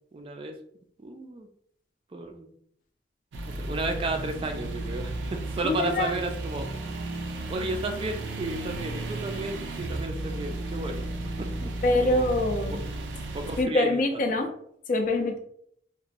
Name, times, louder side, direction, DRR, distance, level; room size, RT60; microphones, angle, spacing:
voice 1, 0.1-0.6 1.0-1.5 2.1-2.5 3.5-6.7 7.5-11.1 11.4-11.7 12.0-12.3 12.7-12.8 13.3-14.4, right 2 dB, 30° right, 5 dB, 0.3 m, -33 dB
sound 1, 3.3-13.6, right 2 dB, 90° right, 0.5 m, -34 dB
voice 2, 5.6-6.2 11.8-12.8 13.6-14.5 14.9-15.4, left 2 dB, 50° left, 5 dB, 0.4 m, -24 dB
2.9 x 2.1 x 2.5 m, 0.67 s
head